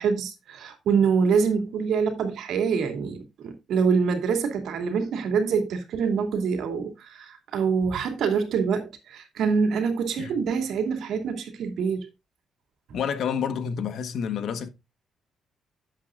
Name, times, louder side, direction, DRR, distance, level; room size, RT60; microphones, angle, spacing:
voice 1, 0.0-12.1, right 5 dB, 75° right, 2.6 m, -25 dB
voice 2, 12.9-14.7, left 7 dB, 70° left, 1.4 m, -29 dB
12.0 x 8.2 x 2.5 m
cardioid pair, 90°, 0 cm